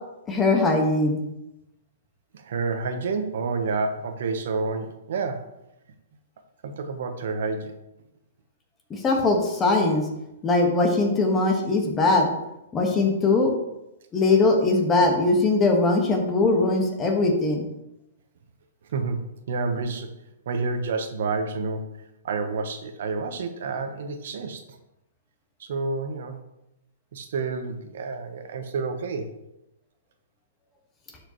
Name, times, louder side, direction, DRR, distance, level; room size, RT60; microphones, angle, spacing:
voice 1, 0.3-1.2 8.9-10.1 10.4-12.3 12.7-13.5 14.1-17.6, left 3 dB, 15° left, 2 dB, 1.4 m, -21 dB
voice 2, 2.3-5.5 6.6-7.8 18.9-20.1 20.5-24.6 25.6-26.4 27.1-29.4, right 4 dB, 65° right, 7 dB, 1.0 m, -29 dB
12.0 x 4.9 x 3.0 m, 0.90 s
hypercardioid pair, 145°, 0 cm